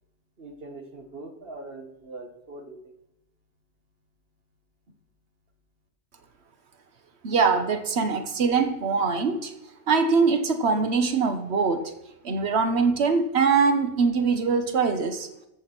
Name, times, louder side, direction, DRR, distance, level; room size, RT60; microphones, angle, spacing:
voice 1, 0.4-2.9, right 2 dB, 65° right, 5 dB, 2.0 m, -42 dB
voice 2, 7.2-9.5 9.9-11.9 12.2-15.3, right 5 dB, 90° right, 8 dB, 1.4 m, -23 dB
14.5 x 6.5 x 6.0 m, 0.89 s
omnidirectional pair, 1.1 m